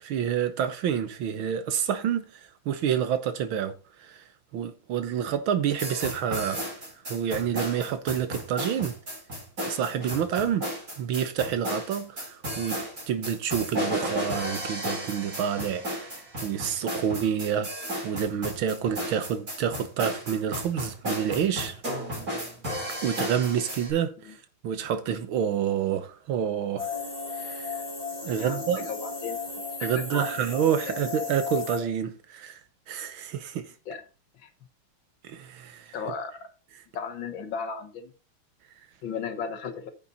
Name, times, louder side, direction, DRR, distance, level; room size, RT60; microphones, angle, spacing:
voice 1, 0.0-2.2 2.7-4.2 4.5-6.7 7.1-8.9 9.6-10.7 11.0-12.8 13.1-16.1 16.4-17.7 18.0-21.8 23.0-24.4 24.6-26.9 27.4-27.7 28.3-28.9 29.8-32.6 32.9-33.7 35.2-35.9, right 8 dB, 70° right, 1.7 m, -28 dB
sound 1, 5.7-23.9, equal, 40° right, 5.0 m, -34 dB
sound 2, 26.8-31.8, left 4 dB, 15° left, 3.3 m, -35 dB
voice 2, 28.2-29.4 29.8-30.3 30.9-31.0 33.9-34.0 34.3-34.5 35.9-36.5 36.9-38.1 39.0-39.9, left 6 dB, 65° left, 1.9 m, -35 dB
9.5 x 7.2 x 3.9 m
omnidirectional pair, 2.4 m